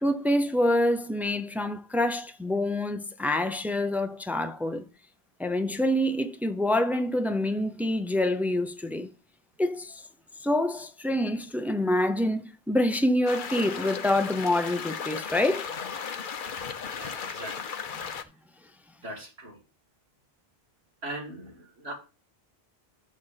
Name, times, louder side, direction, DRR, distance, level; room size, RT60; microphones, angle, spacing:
voice 1, 0.0-4.8 5.4-9.1 9.6-10.0 10.4-15.7, left 1 dB, ahead, 0.5 m, -26 dB
sound 1, 13.3-18.2, left 6 dB, 55° left, 0.9 m, -35 dB
voice 2, 16.9-17.7 19.0-19.6 21.0-21.9, right 1 dB, 85° right, 2.5 m, -40 dB
6.7 x 6.4 x 5.7 m
omnidirectional pair, 1.0 m